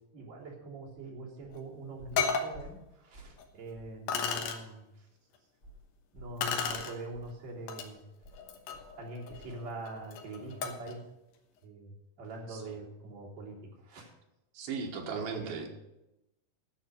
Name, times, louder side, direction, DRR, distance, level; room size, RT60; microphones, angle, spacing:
voice 1, 0.1-5.1 6.1-8.0 9.0-11.0 11.6-14.1 15.1-15.7, right 2 dB, 45° right, -5 dB, 4.1 m, -44 dB
sound 1, 0.9-1.0 1.4-1.7 2.0-3.5 3.7-4.0 4.4-4.5 5.6-9.6 9.9-10.1 10.5-10.6, equal, 30° left, 4.3 m, -54 dB
sound 2, 1.5-1.6 2.2-2.5 3.4-3.5 4.1-4.6 6.4-6.9 7.7-7.9 8.3-10.9, left 6 dB, 80° left, 3.3 m, -34 dB
voice 2, 12.5-12.8 14.5-15.7, right 5 dB, 65° right, 2 dB, 3.0 m, -37 dB
11.0 x 7.1 x 8.0 m, 0.91 s
omnidirectional pair, 4.8 m